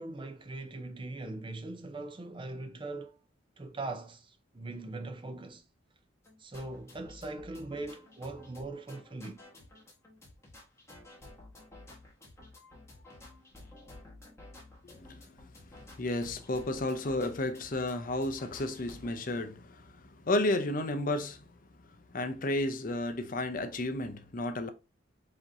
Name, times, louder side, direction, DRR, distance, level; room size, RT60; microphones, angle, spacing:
voice 1, 0.0-3.2 3.6-5.6 6.4-9.4, right 2 dB, 25° right, 0.6 m, -41 dB
sound 1, 6.2-19.1, left 2 dB, 15° left, 1.4 m, -53 dB
voice 2, 14.8-15.5 16.0-21.4 22.1-24.7, left 2 dB, 45° left, 0.6 m, -32 dB
4.9 x 2.9 x 2.6 m
head